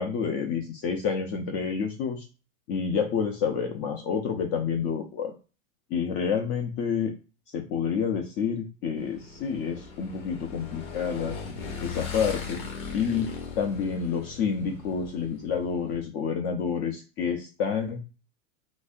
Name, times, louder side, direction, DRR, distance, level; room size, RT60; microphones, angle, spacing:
voice 1, 0.0-2.3 2.7-5.3 5.9-7.1 7.5-11.4 11.8-12.6 12.9-13.3 13.6-18.0, left 6 dB, 35° left, 4 dB, 0.5 m, -28 dB
Motorcycle / Engine, 9.0-16.0, left 5 dB, 75° left, 1.4 m, -39 dB
4.0 x 2.7 x 2.5 m, 0.33 s
hypercardioid pair, 115°, 42 cm